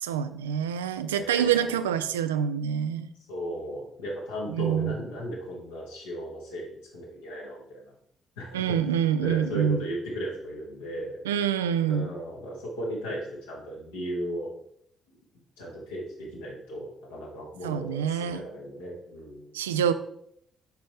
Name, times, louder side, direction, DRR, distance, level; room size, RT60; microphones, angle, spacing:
voice 1, 0.0-3.1 4.5-5.0 8.5-9.9 11.2-12.1 17.6-18.4 19.5-19.9, right 8 dB, 80° right, 11 dB, 0.3 m, -26 dB
voice 2, 1.1-1.7 3.3-7.9 8.4-11.2 11.9-14.5 15.6-19.5, equal, 75° left, -3 dB, 1.7 m, -36 dB
7.9 x 5.2 x 3.2 m, 0.70 s
figure-of-eight pair, 45°, 0 cm